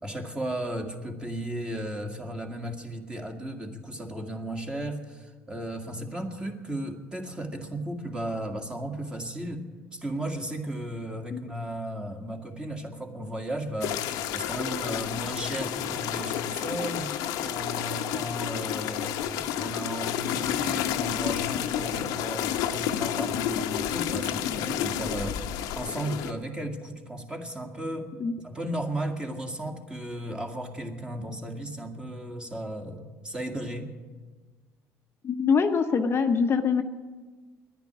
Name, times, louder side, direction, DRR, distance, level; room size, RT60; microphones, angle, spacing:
voice 1, 0.0-14.0 14.3-25.5 25.8-28.1 28.4-33.9, right 1 dB, 15° right, 4 dB, 1.9 m, -35 dB
sound 1, 13.8-26.3, left 10 dB, 80° left, 0.8 m, -30 dB
voice 2, 35.2-36.8, left 5 dB, 40° left, 6 dB, 0.8 m, -24 dB
10.5 x 10.0 x 9.8 m, 1.4 s
supercardioid pair, 90°, 6 cm